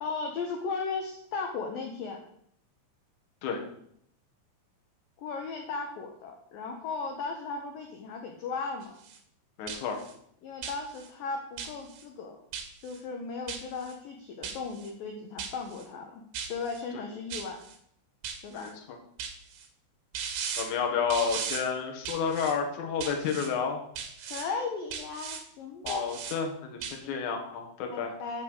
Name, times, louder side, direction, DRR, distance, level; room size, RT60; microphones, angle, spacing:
voice 1, 0.0-2.2 5.2-8.9 10.4-12.4 12.8-16.2 16.5-17.6 18.4-18.7 24.2-26.1 27.0-27.2 27.9-28.4, left 4 dB, 80° left, 3 dB, 2.0 m, -36 dB
sound 1, 8.8-9.2 9.7-10.1 10.6-11.1 11.6-12.0 12.5-13.0 13.5-13.9 14.4-14.9 15.4-15.8 16.3-16.8 17.3-17.8 18.2-18.7 19.2-19.7 20.1-20.7 21.1-21.6 22.0-22.5 23.0-23.5 24.0-24.5 24.9-25.4 25.9-26.4 26.8-27.0, right 7 dB, 75° right, 2.1 m, -37 dB
voice 2, 9.6-10.0 18.5-19.0 20.6-23.8 25.8-28.2, left 6 dB, 60° left, 2 dB, 2.1 m, -31 dB
8.3 x 5.5 x 7.7 m, 0.69 s
omnidirectional pair, 5.5 m